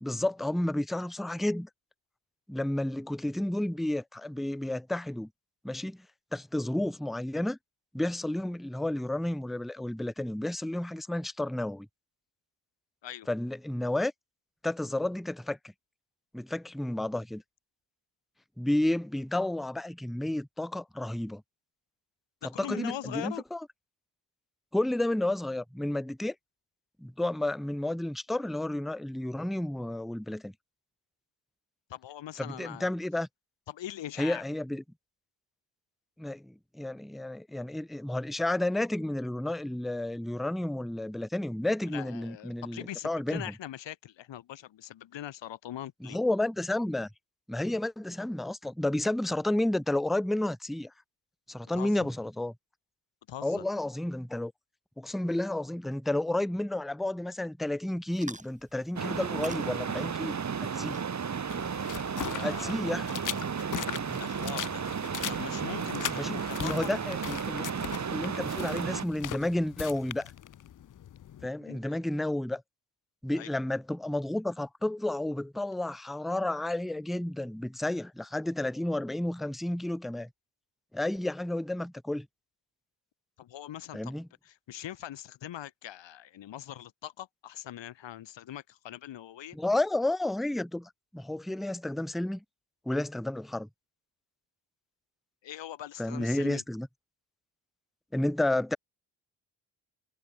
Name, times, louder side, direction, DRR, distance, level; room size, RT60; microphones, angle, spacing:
voice 1, 0.0-1.7 2.5-5.3 5.6-6.0 6.3-7.6 7.9-11.9 13.3-14.1 14.6-15.6 16.3-17.4 18.6-21.4 22.6-23.6 24.7-26.3 27.0-30.5 32.4-33.3 34.2-34.8 36.2-43.4 46.0-47.1 47.5-50.9 51.5-52.5 53.4-54.5 55.0-61.0 62.4-63.1 66.1-67.7 68.1-70.3 71.4-72.6 73.2-80.3 80.9-82.3 83.9-84.3 89.5-92.4 92.9-93.7 96.0-96.9 98.1-98.8, left 1 dB, ahead, 0.3 m, -31 dB
voice 2, 22.4-23.4 31.9-32.9 33.7-34.4 41.9-46.2 51.8-52.1 53.3-53.6 62.3-62.8 64.1-66.9 71.6-72.0 73.3-73.5 83.4-89.6 95.4-96.6, left 12 dB, 85° left, 4.2 m, -42 dB
sound 1, 58.1-64.4, right 2 dB, 15° right, 7.8 m, -51 dB
sound 2, 59.0-69.1, right 6 dB, 40° right, 1.7 m, -33 dB
sound 3, 61.5-71.5, left 11 dB, 45° left, 0.7 m, -40 dB
cardioid pair, 80°, 43 cm